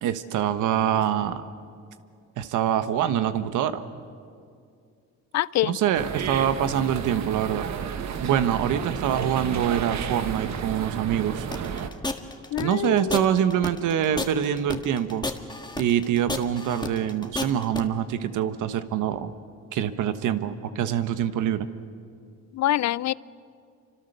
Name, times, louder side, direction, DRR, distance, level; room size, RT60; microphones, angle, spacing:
voice 1, 0.0-1.4 2.4-3.8 5.6-7.7 8.2-11.5 12.6-15.3 15.8-19.3 19.7-21.7, right 10 dB, 85° right, 11 dB, 1.3 m, -25 dB
voice 2, 5.3-5.8 12.5-13.3 22.5-23.1, left 14 dB, 65° left, 21 dB, 0.5 m, -25 dB
sound 1, 5.9-11.9, right 7 dB, 65° right, 1.4 m, -32 dB
sound 2, 11.5-17.8, left 2 dB, 15° left, 1.8 m, -31 dB
28.0 x 25.5 x 6.8 m, 2.3 s
cardioid pair, 90°, 30 cm